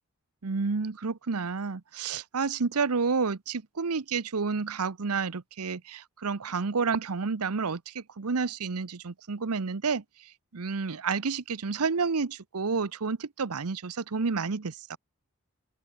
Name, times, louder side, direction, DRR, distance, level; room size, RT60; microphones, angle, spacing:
voice 1, 0.4-10.0 10.5-15.0, right 5 dB, 90° right, 0.8 m, -30 dB
head